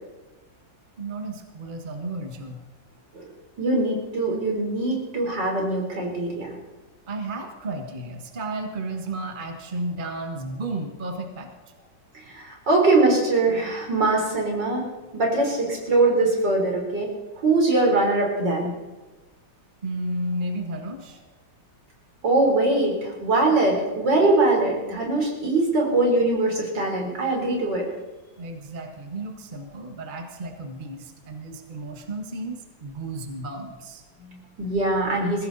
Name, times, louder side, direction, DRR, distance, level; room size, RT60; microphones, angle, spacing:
voice 1, 1.0-2.6 7.1-11.5 19.8-21.2 28.4-34.0, right 2 dB, 30° right, 4 dB, 1.5 m, -33 dB
voice 2, 3.6-6.5 12.3-17.1 17.4-18.7 22.2-27.9 34.2-35.5, right 2 dB, 70° right, 0 dB, 4.6 m, -22 dB
21.5 x 16.5 x 4.1 m, 1.2 s
omnidirectional pair, 2.0 m